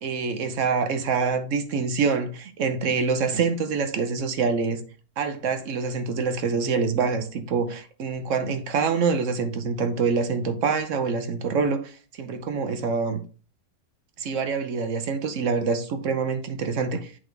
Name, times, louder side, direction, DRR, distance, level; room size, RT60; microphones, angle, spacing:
voice 1, 0.0-4.8 5.2-13.2 14.2-17.1, right 5 dB, 60° right, 1.1 m, -26 dB
8.1 x 3.9 x 3.4 m
omnidirectional pair, 1.5 m